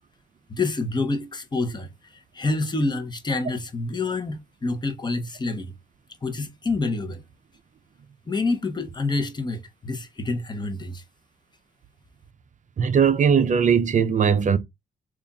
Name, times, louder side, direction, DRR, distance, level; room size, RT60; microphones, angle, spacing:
voice 1, 0.5-1.9 2.3-5.7 6.2-7.2 8.3-11.0, left 3 dB, 20° left, 0.9 m, -27 dB
voice 2, 12.8-14.6, right 7 dB, 40° right, 0.6 m, -19 dB
3.5 x 2.5 x 4.0 m
cardioid pair, 90°, 20 cm